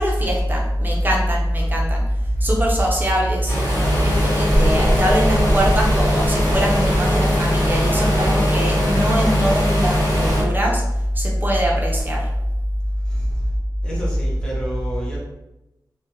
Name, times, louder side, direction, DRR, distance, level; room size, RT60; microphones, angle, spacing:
voice 1, 0.0-2.0 2.4-3.5 4.0-10.8 11.1-12.3, equal, 25° right, -2 dB, 0.5 m, -20 dB
sound 1, 3.5-10.4, equal, 45° left, 1.5 m, -20 dB
voice 2, 13.8-15.2, right 1 dB, 10° left, -6 dB, 0.9 m, -27 dB
2.4 x 2.1 x 2.7 m, 0.95 s
wide cardioid pair, 90°, 8 cm